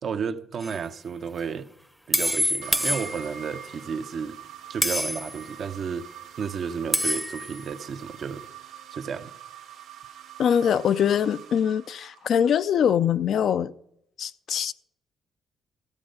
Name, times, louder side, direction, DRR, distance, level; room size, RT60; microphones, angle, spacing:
voice 1, 0.0-1.7 2.1-4.4 4.7-6.1 6.4-8.4 8.9-9.3, right 6 dB, 55° right, 0.7 m, -32 dB
sound 1, 0.6-0.8 2.1-3.6 4.8-5.4 6.9-7.6, equal, ahead, 0.7 m, -26 dB
sound 2, 2.6-12.6, right 11 dB, 90° right, 1.8 m, -45 dB
voice 2, 10.4-13.7 14.2-14.7, left 8 dB, 65° left, 0.4 m, -23 dB
14.5 x 7.6 x 5.2 m
cardioid pair, 90°, 0 cm